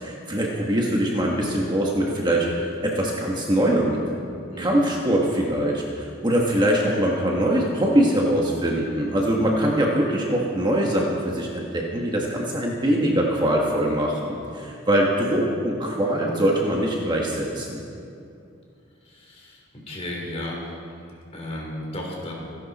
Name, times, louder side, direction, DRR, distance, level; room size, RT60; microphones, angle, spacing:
voice 1, 0.0-4.0 4.6-17.8, right 1 dB, 20° right, -2 dB, 1.5 m, -23 dB
voice 2, 4.5-4.9 19.1-19.6 19.9-20.7 21.3-22.3, left 1 dB, 30° left, -2 dB, 3.6 m, -34 dB
26.5 x 11.0 x 4.3 m, 2.4 s
head